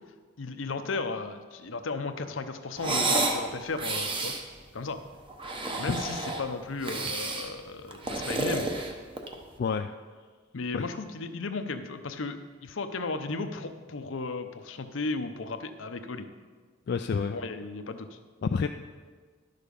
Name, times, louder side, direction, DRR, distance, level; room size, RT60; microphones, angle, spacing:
voice 1, 0.4-4.3 4.7-5.0 5.8-8.7 10.5-16.3 17.3-18.2, left 3 dB, 75° left, 8 dB, 0.7 m, -35 dB
sound 1, 2.8-3.4 3.7-4.4 5.3-6.4 6.8-7.5 7.9-9.4, right 2 dB, 25° right, 0.9 m, -30 dB
voice 2, 9.6-9.9 10.7-10.9 16.9-17.4 18.4-18.7, left 5 dB, 55° left, 6 dB, 0.3 m, -28 dB
11.0 x 6.7 x 5.3 m, 1.5 s
head